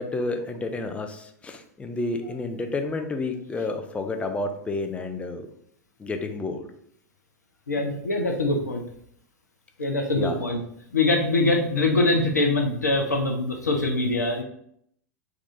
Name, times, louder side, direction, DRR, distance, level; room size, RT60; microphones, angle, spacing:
voice 1, 0.0-5.5 6.0-6.7 10.1-10.4, left 2 dB, 15° left, 5 dB, 0.5 m, -30 dB
voice 2, 7.7-8.8 9.8-10.6 10.9-14.4, left 2 dB, 85° left, 1 dB, 0.6 m, -23 dB
3.7 x 2.4 x 3.9 m, 0.69 s
figure-of-eight pair, 90°, 9 cm